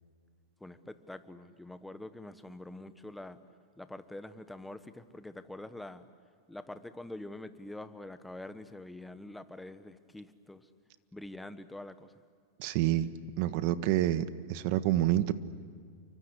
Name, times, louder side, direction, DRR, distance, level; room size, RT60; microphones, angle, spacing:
voice 1, 0.6-3.4 3.8-6.1 6.5-10.7 11.1-12.1, left 1 dB, 5° left, 11 dB, 1.2 m, -45 dB
voice 2, 12.6-13.1 13.4-15.3, right 13 dB, 50° right, 13 dB, 1.4 m, -28 dB
29.0 x 24.5 x 8.1 m, 2.1 s
supercardioid pair, 140°, 0 cm